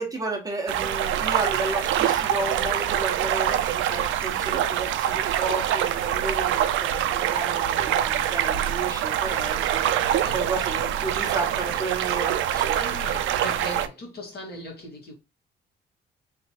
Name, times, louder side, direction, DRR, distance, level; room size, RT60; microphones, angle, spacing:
voice 1, 0.0-12.8, right 3 dB, 20° right, 1.1 m, -32 dB
sound 1, 0.7-13.9, right 11 dB, 80° right, 0.4 m, -25 dB
voice 2, 12.7-15.1, left 1 dB, 55° left, 1.8 m, -38 dB
3.4 x 3.0 x 2.8 m
cardioid pair, 90°, 20 cm